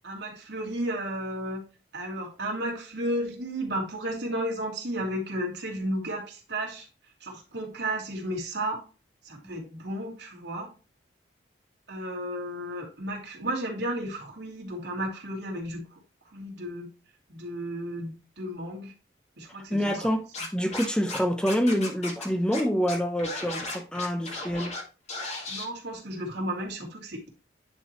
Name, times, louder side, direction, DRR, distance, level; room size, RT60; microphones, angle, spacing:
voice 1, 0.0-1.6 1.9-6.9 7.2-8.8 9.2-10.7 11.9-16.0 16.3-16.9 17.3-18.9 19.4-20.0 25.5-27.3, right 1 dB, 70° right, 2.7 m, -33 dB
voice 2, 19.7-24.7, equal, 5° left, 0.6 m, -27 dB
Scratching (performance technique), 20.3-21.2 21.5-22.2 22.5-22.6 22.9-24.8 25.1-25.6, left 2 dB, 35° left, 1.9 m, -35 dB
10.0 x 4.5 x 3.0 m
head